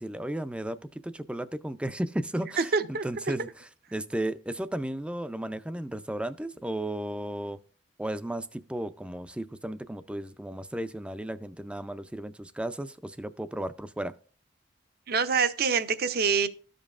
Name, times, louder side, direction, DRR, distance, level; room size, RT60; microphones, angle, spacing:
voice 1, 0.0-2.7 3.0-7.6 8.0-14.1, right 1 dB, 5° right, 0.4 m, -34 dB
voice 2, 2.6-3.0 15.1-16.5, right 5 dB, 55° right, 0.6 m, -25 dB
13.5 x 5.2 x 2.4 m
head